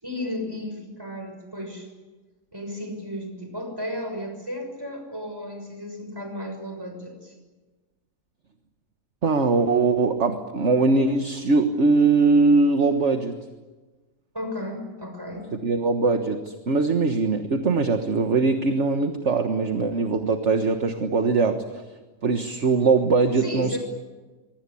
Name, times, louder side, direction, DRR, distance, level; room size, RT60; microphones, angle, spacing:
voice 1, 0.0-1.9 2.5-7.3 14.3-15.5 23.4-23.8, left 1 dB, 10° right, 4 dB, 6.2 m, -34 dB
voice 2, 9.2-13.3 15.6-21.8 22.2-23.8, right 4 dB, 40° right, 7 dB, 1.6 m, -21 dB
25.5 x 23.5 x 8.6 m, 1.2 s
omnidirectional pair, 1.9 m